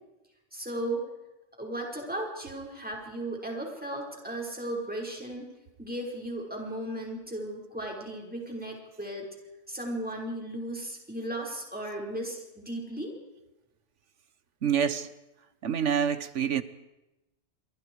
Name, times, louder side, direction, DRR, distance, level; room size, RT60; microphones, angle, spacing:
voice 1, 0.5-1.1 1.6-5.5 5.8-9.3 9.7-13.1, right 1 dB, 5° right, -1 dB, 5.3 m, -36 dB
voice 2, 14.6-15.1 15.6-16.6, right 8 dB, 85° right, 14 dB, 1.5 m, -26 dB
29.0 x 27.0 x 4.8 m, 0.98 s
omnidirectional pair, 1.2 m